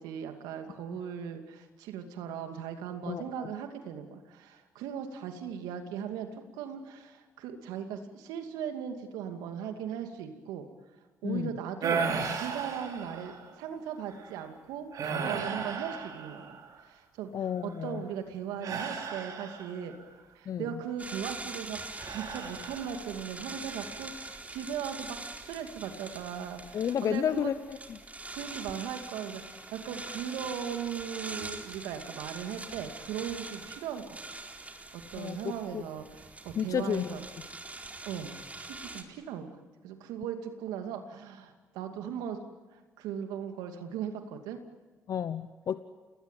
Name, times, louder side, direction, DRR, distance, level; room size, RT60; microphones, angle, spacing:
voice 1, 0.0-6.3 6.5-10.7 11.2-12.0 12.4-17.3 17.6-19.9 20.3-25.2 25.4-27.5 28.3-34.2 34.9-37.3 38.1-39.6 39.8-42.4 43.0-44.6, right 8 dB, 80° right, 6 dB, 2.6 m, -38 dB
voice 2, 3.1-3.5 11.2-11.5 17.3-18.0 20.5-20.7 26.7-28.0 35.2-35.8 36.6-37.1 45.1-45.8, left 8 dB, 55° left, 13 dB, 0.9 m, -32 dB
sound 1, 11.8-13.5 14.1-14.3 14.9-16.8 18.6-20.0 22.0-23.1 23.5-24.0, right 5 dB, 60° right, 4.0 m, -35 dB
sound 2, 21.0-39.0, right 2 dB, 20° right, 4.2 m, -44 dB
28.5 x 20.5 x 9.2 m, 1.3 s
hypercardioid pair, 55°, 7 cm